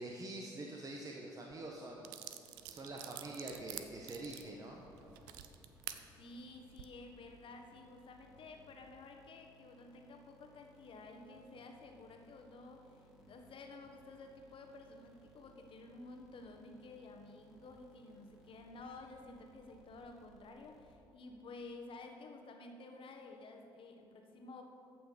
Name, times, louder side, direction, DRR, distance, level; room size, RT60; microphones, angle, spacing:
voice 1, 0.0-4.8, right 2 dB, 30° right, 0 dB, 1.2 m, -46 dB
sound 1, 2.0-6.0 6.6-6.9, right 13 dB, 70° right, 0.5 m, -48 dB
sound 2, 2.5-21.3, right 1 dB, ahead, 2.3 m, -65 dB
voice 2, 6.2-24.6, left 3 dB, 50° left, 4 dB, 1.4 m, -52 dB
14.0 x 5.9 x 5.1 m, 2.9 s
hypercardioid pair, 50°, 12 cm